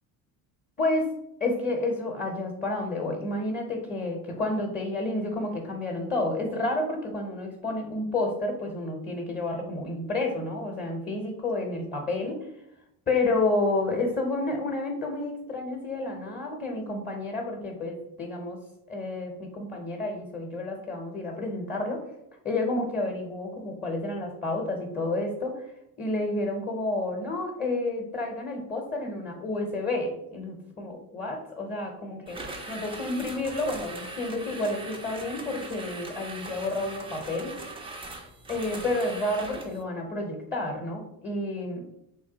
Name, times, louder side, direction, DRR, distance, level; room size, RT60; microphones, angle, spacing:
voice 1, 0.8-12.5 13.1-22.0 22.4-25.7 26.0-37.6 38.5-41.9, left 2 dB, 20° left, 1 dB, 0.7 m, -30 dB
sound 1, 32.3-39.8, right 2 dB, 15° right, 0.4 m, -40 dB
3.1 x 2.3 x 3.9 m, 0.80 s
supercardioid pair, 90°, 46 cm